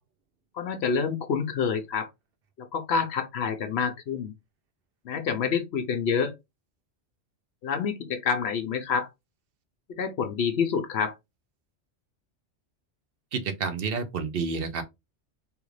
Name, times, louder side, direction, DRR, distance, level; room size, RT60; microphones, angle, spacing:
voice 1, 0.5-2.1 2.6-4.3 5.0-6.3 7.6-9.1 9.9-11.1, left 6 dB, 65° left, 0.9 m, -27 dB
voice 2, 13.3-14.8, right 5 dB, 60° right, 0.8 m, -29 dB
3.4 x 2.4 x 3.1 m
omnidirectional pair, 1.2 m